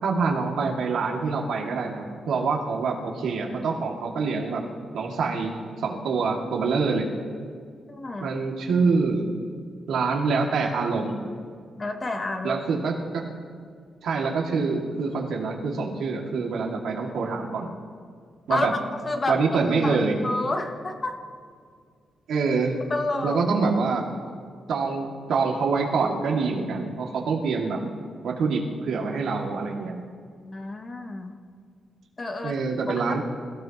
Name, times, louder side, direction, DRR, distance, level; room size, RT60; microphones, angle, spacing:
voice 1, 0.0-4.6 4.9-7.1 8.2-9.3 9.9-11.2 12.4-13.3 14.0-17.7 18.5-18.7 19.3-20.2 22.3-22.8 23.2-24.0 24.7-27.8 28.2-29.9 32.4-33.2, right 4 dB, 75° right, -1 dB, 2.5 m, -25 dB
voice 2, 7.9-8.3 11.8-12.6 18.5-18.7 19.0-19.4 19.8-21.2 22.9-23.4 30.4-31.4 32.2-32.6 33.1-33.2, left 2 dB, 25° left, 5 dB, 1.1 m, -29 dB
28.5 x 16.5 x 3.1 m, 2.1 s
wide cardioid pair, 175°, 0 cm